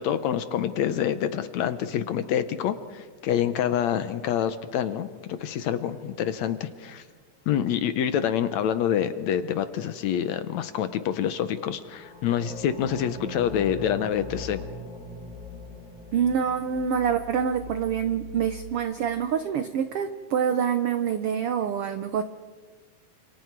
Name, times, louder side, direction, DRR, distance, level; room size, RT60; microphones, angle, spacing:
voice 1, 0.0-7.0 7.5-14.6, left 9 dB, 70° left, 11 dB, 1.9 m, -27 dB
sound 1, 5.4-6.6 11.8-18.7, left 1 dB, 5° right, 4.8 m, -41 dB
voice 2, 16.1-22.2, right 8 dB, 90° right, 9 dB, 1.2 m, -26 dB
29.5 x 27.5 x 4.7 m, 1.5 s
omnidirectional pair, 3.8 m